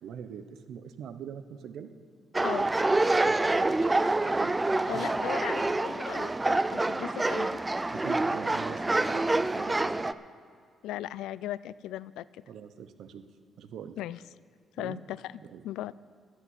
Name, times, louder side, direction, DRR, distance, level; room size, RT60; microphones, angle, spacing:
voice 1, 0.0-1.9 3.2-4.5 4.8-5.1 7.9-10.1 12.5-13.3 13.6-14.0 14.8-15.0 15.4-15.6, right 8 dB, 75° right, 10 dB, 0.9 m, -43 dB
sound 1, 2.3-10.1, right 2 dB, 15° right, 0.4 m, -27 dB
voice 2, 4.9-7.6 10.8-12.3 14.0-14.2 14.8-15.2 15.6-15.9, left 13 dB, 90° left, 19 dB, 0.3 m, -37 dB
13.5 x 6.5 x 9.6 m, 2.1 s
cardioid pair, 90°, 0 cm